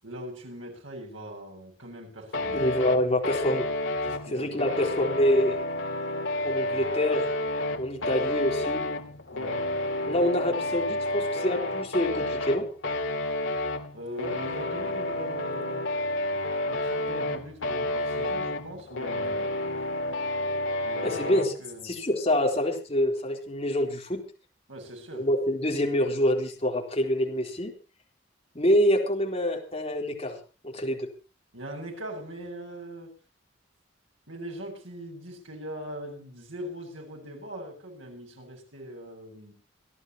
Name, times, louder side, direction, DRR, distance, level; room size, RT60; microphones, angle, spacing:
voice 1, 0.0-2.6 4.0-4.8 9.3-9.7 13.9-15.8 16.6-19.6 20.8-21.9 24.7-25.3 31.5-33.1 34.3-39.5, equal, 85° right, 7.7 m, -40 dB
sound 1, 2.3-21.5, left 1 dB, 70° left, 2.2 m, -30 dB
voice 2, 2.5-3.7 4.3-5.6 6.4-7.3 7.8-8.8 10.1-12.7 21.0-21.5 21.8-24.2 25.1-27.7 28.5-30.4 30.6-31.1, left 1 dB, 30° left, 4.0 m, -26 dB
26.5 x 13.0 x 3.1 m
head